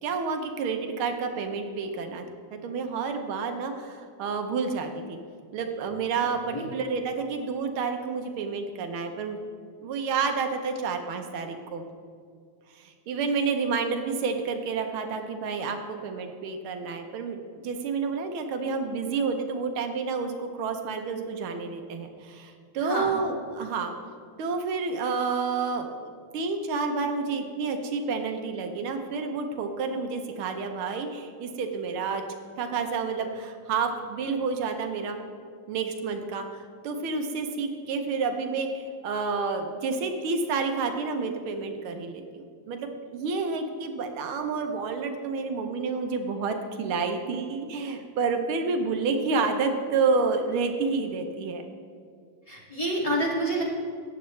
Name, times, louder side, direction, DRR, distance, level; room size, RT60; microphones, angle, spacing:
voice 1, 0.0-2.2 2.5-5.2 5.5-9.4 9.8-11.8 12.7-23.9 24.4-32.2 32.6-35.2 35.7-51.6, right 4 dB, 85° right, 5 dB, 1.7 m, -29 dB
voice 2, 52.5-53.6, right 1 dB, 15° left, -6 dB, 2.2 m, -28 dB
14.0 x 9.2 x 3.2 m, 2.2 s
omnidirectional pair, 2.3 m